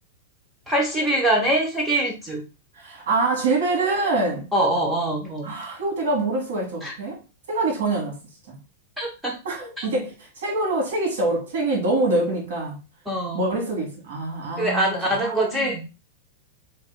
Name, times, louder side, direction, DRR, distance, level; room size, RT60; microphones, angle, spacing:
voice 1, 0.7-2.4 4.5-5.5 6.8-6.9 9.0-9.4 9.8-9.9 13.1-13.4 14.6-15.8, right 1 dB, 5° right, 0.7 m, -23 dB
voice 2, 2.8-4.5 5.4-7.2 7.5-8.2 8.5-8.6 9.4-12.8 13.3-15.7, right 2 dB, 70° right, 2.1 m, -25 dB
4.6 x 3.4 x 2.3 m
supercardioid pair, 165°, 0 cm